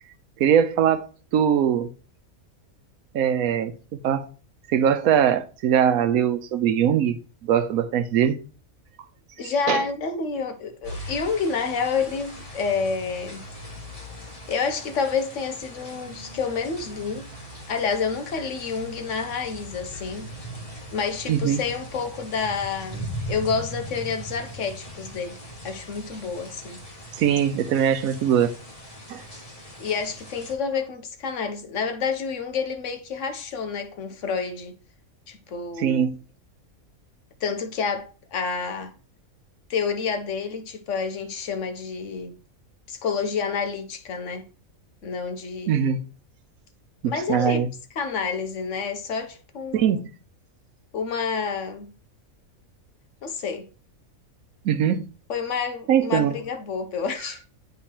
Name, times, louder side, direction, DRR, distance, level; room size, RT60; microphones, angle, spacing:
voice 1, 0.4-1.9 3.1-4.3 4.7-7.2 7.4-8.4 9.4-9.8 21.3-21.6 27.1-28.5 29.1-29.2 35.8-36.2 45.7-46.0 47.0-47.7 49.7-50.0 54.6-55.1 55.9-56.3, right 9 dB, 80° right, 1.1 m, -21 dB
voice 2, 9.4-13.4 14.5-17.3 17.7-20.3 20.9-25.4 25.6-26.8 29.8-34.8 35.3-36.1 37.4-38.9 39.7-42.3 42.9-44.5 45.0-45.9 47.0-47.6 47.9-50.0 50.9-51.9 53.2-53.7 55.3-57.4, left 5 dB, 65° left, 1.1 m, -29 dB
sound 1, 10.8-30.5, equal, 25° left, 1.7 m, -40 dB
9.9 x 3.7 x 2.9 m
omnidirectional pair, 1.5 m